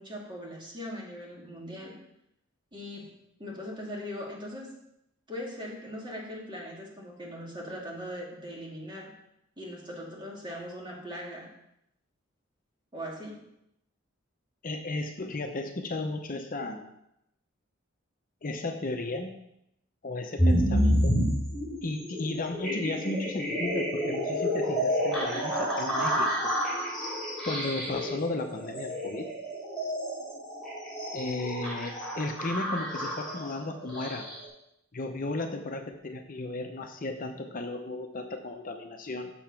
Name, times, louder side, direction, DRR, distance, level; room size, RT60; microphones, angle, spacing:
voice 1, 0.0-2.0 2.7-4.7 5.3-9.1 9.6-11.5 12.9-13.4, equal, 25° right, -2 dB, 2.2 m, -40 dB
voice 2, 14.6-16.9 18.4-19.3 20.0-21.1 21.8-26.5 27.4-29.3 31.1-34.3 34.9-39.3, left 2 dB, 45° left, 4 dB, 0.8 m, -34 dB
sound 1, 20.4-34.5, equal, 5° left, 3.6 m, -29 dB
7.2 x 7.0 x 5.8 m, 0.80 s
head